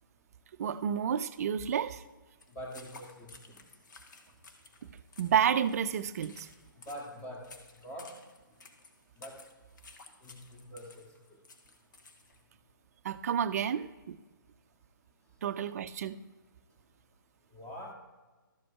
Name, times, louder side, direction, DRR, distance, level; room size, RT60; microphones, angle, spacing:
voice 1, 0.6-2.0 5.2-6.5 13.0-14.2 15.4-16.2, right 8 dB, 45° right, 0.5 m, -30 dB
sound 1, 2.4-12.4, left 3 dB, 60° left, 1.3 m, -55 dB
voice 2, 2.5-3.5 6.8-8.3 9.2-9.4 10.2-11.0 17.5-17.9, equal, 15° left, 1.7 m, -44 dB
13.0 x 5.0 x 4.7 m
hypercardioid pair, 145°, 11 cm